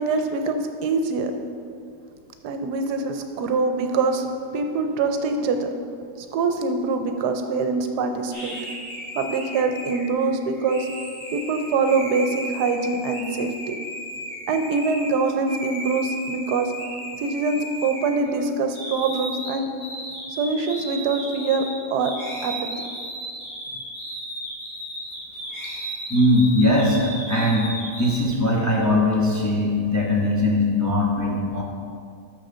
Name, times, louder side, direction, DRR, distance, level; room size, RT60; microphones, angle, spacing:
voice 1, 0.0-1.3 2.4-4.3 4.5-5.7 6.2-8.6 9.2-10.9 11.3-13.8 14.5-16.7 17.2-19.7 20.4-22.1 22.4-22.5, right 4 dB, 80° right, 6 dB, 1.2 m, -24 dB
sound 1, 8.3-15.1 15.5-18.4 18.7-28.2, equal, 80° left, 3.0 m, -35 dB
voice 2, 26.1-27.7 28.0-31.6, left 1 dB, 15° left, -4 dB, 0.7 m, -20 dB
6.5 x 6.4 x 5.5 m, 2.3 s
omnidirectional pair, 1.8 m